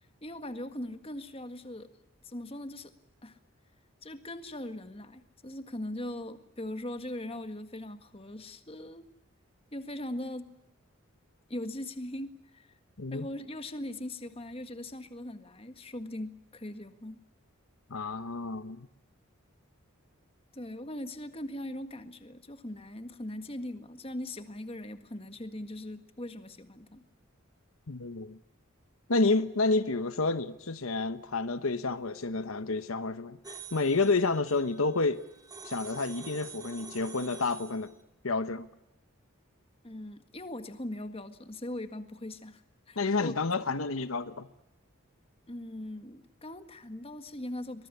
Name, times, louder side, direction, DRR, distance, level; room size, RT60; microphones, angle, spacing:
voice 1, 0.2-1.9 2.2-2.9 3.2-3.4 4.0-9.1 9.7-10.5 11.5-12.7 13.1-17.2 20.5-27.1 39.8-42.6 42.9-43.3 45.5-47.9, left 1 dB, 25° left, 1.7 m, -40 dB
voice 2, 17.9-18.9 27.9-28.4 29.1-35.2 35.6-37.9 38.2-38.7 43.0-44.5, left 3 dB, 75° left, 1.1 m, -29 dB
sound 1, 33.4-37.9, right 4 dB, 15° right, 2.8 m, -47 dB
23.5 x 21.5 x 9.8 m
head